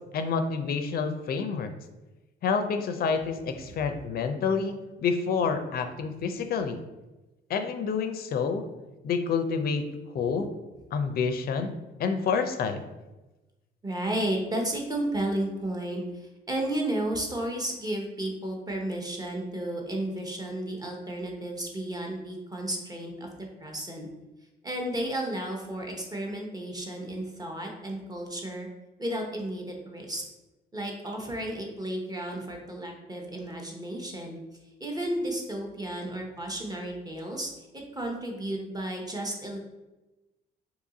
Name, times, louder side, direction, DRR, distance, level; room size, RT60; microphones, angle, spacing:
voice 1, 0.0-1.7 2.4-6.8 7.5-8.7 9.0-9.9 10.1-10.5 10.9-11.7 12.0-12.8, left 5 dB, 50° left, 8 dB, 0.4 m, -28 dB
voice 2, 13.8-23.3 23.6-24.1 24.6-28.7 29.0-30.2 30.7-34.4 34.8-39.6, right 1 dB, 20° right, 0 dB, 0.7 m, -33 dB
2.8 x 2.6 x 3.7 m, 1.1 s
cardioid pair, 90°, 20 cm